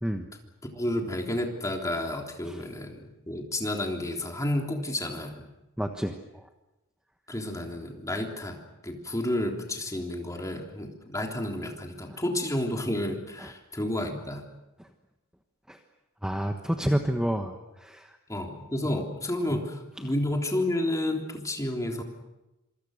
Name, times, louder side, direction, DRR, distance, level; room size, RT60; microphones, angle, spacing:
voice 1, 0.7-5.5 7.3-14.4 18.3-22.0, left 1 dB, 15° left, 2 dB, 3.5 m, -31 dB
voice 2, 5.8-6.5 12.1-12.2 13.4-13.5 14.8-14.9 15.7-15.8 16.2-18.2, equal, 5° right, 5 dB, 1.2 m, -30 dB
26.5 x 25.0 x 6.6 m, 0.98 s
head